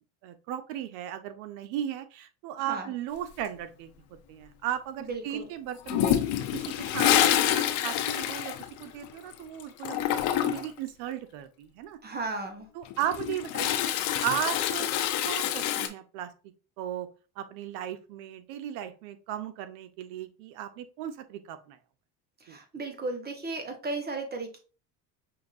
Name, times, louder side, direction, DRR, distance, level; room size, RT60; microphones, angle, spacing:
voice 1, 0.2-3.9 4.3-8.5 8.8-12.0 12.7-13.9 14.2-14.9 15.2-16.3 16.8-17.1 17.4-21.8 22.5-22.6, right 11 dB, 90° right, 10 dB, 0.7 m, -36 dB
voice 2, 2.6-2.9 5.0-5.5 12.0-12.7 22.4-24.6, right 3 dB, 25° right, 5 dB, 1.0 m, -35 dB
Toilet flush, 5.9-9.3 9.6-10.8 12.8-15.9, left 11 dB, 70° left, 0.7 m, -27 dB
5.7 x 2.6 x 2.5 m, 0.36 s
cardioid pair, 115°, 41 cm